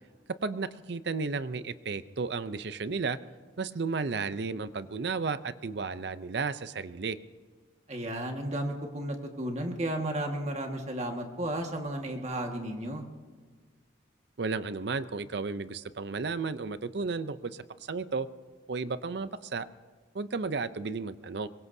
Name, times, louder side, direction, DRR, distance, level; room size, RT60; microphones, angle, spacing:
voice 1, 0.4-3.2 3.6-7.2 14.4-18.3 18.7-19.7 20.1-21.5, right 4 dB, 60° right, 14 dB, 0.6 m, -33 dB
voice 2, 7.9-13.0, right 1 dB, 35° right, 3 dB, 1.7 m, -33 dB
23.0 x 22.0 x 2.7 m, 1.5 s
head